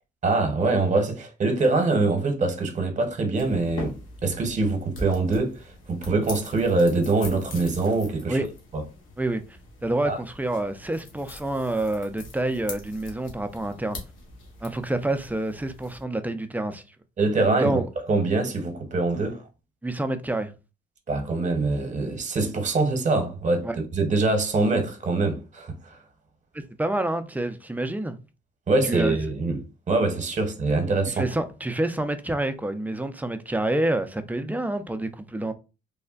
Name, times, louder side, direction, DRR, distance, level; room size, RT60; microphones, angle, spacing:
voice 1, 0.2-3.9 4.2-5.6 5.9-8.4 8.7-8.8 10.0-10.2 17.2-17.8 18.1-19.4 21.1-25.8 28.7-29.6 29.9-31.2, right 3 dB, 40° right, 0.8 m, -24 dB
sound 1, 3.3-16.0, left 2 dB, 85° left, 0.9 m, -42 dB
voice 2, 9.8-14.0 14.6-16.8 17.6-17.9 19.8-20.5 23.6-23.8 26.8-28.2 28.8-29.2 31.1-35.5, right 1 dB, 10° right, 0.3 m, -27 dB
3.3 x 2.1 x 2.3 m
cardioid pair, 90°, 20 cm